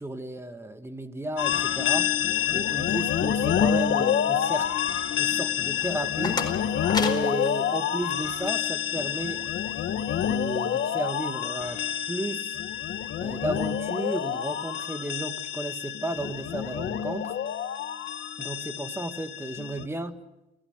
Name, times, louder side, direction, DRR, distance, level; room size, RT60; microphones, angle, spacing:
voice 1, 0.0-2.1 2.5-4.7 5.2-6.5 6.9-9.5 10.2-11.8 12.1-12.6 13.2-17.4 18.4-20.2, right 1 dB, 10° right, 8 dB, 2.0 m, -33 dB
sound 1, 1.4-19.9, left 9 dB, 70° left, 1.7 m, -28 dB
sound 2, 5.8-8.6, left 3 dB, 20° left, 4.6 m, -34 dB
29.5 x 16.0 x 8.1 m, 0.96 s
cardioid pair, 90°, 20 cm